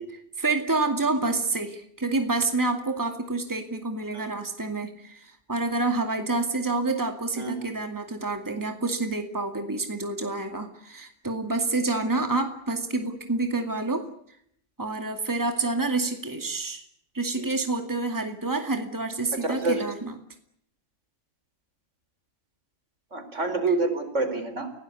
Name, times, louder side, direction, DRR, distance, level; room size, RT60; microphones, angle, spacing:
voice 1, 0.1-14.1 14.8-16.8 17.1-20.2, right 3 dB, 15° right, 5 dB, 2.3 m, -28 dB
voice 2, 7.4-7.7 17.4-17.5 19.3-19.8 23.1-24.7, right 3 dB, 70° right, 8 dB, 4.4 m, -27 dB
29.5 x 18.0 x 8.5 m, 0.71 s
omnidirectional pair, 1.3 m